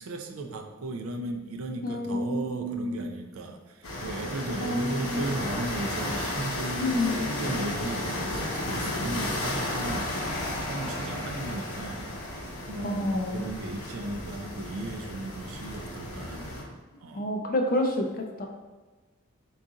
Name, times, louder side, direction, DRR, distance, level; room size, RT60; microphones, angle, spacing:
voice 1, 0.0-12.1 12.7-16.6 17.0-17.4, right 2 dB, 75° right, 4 dB, 0.4 m, -36 dB
voice 2, 1.8-3.1 4.6-5.2 6.8-7.3 12.8-13.4 17.1-18.5, left 1 dB, 40° left, 3 dB, 0.4 m, -29 dB
sound 1, 3.8-16.6, left 1 dB, 90° left, 0.9 m, -33 dB
3.8 x 2.4 x 3.8 m, 1.2 s
head